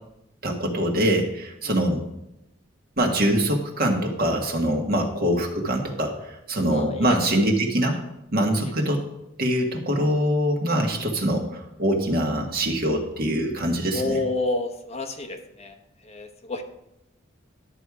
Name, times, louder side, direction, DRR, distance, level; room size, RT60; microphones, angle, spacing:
voice 1, 0.4-2.0 3.0-8.0 8.3-9.0 9.4-14.2, right 1 dB, 50° right, 1 dB, 1.7 m, -24 dB
voice 2, 6.7-7.1 10.9-11.0 13.9-15.7 16.0-16.6, left 2 dB, 35° left, 5 dB, 1.0 m, -29 dB
11.5 x 6.7 x 4.9 m, 0.87 s
head